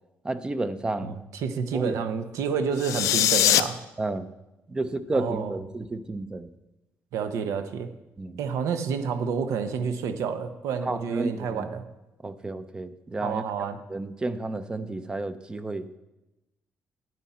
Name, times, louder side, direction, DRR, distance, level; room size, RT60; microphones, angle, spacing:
voice 1, 0.2-1.2 1.7-2.0 4.0-4.3 4.7-6.5 8.2-8.4 10.9-11.7 12.2-13.4 13.9-16.0, right 2 dB, 15° right, 12 dB, 0.5 m, -31 dB
voice 2, 1.0-3.8 5.1-5.6 7.1-7.9 8.4-11.9 13.2-13.8, right 6 dB, 80° right, 9 dB, 0.8 m, -29 dB
sound 1, 2.7-3.6, left 13 dB, 90° left, 0.4 m, -21 dB
9.5 x 9.3 x 4.3 m, 0.97 s
cardioid pair, 145°, 5 cm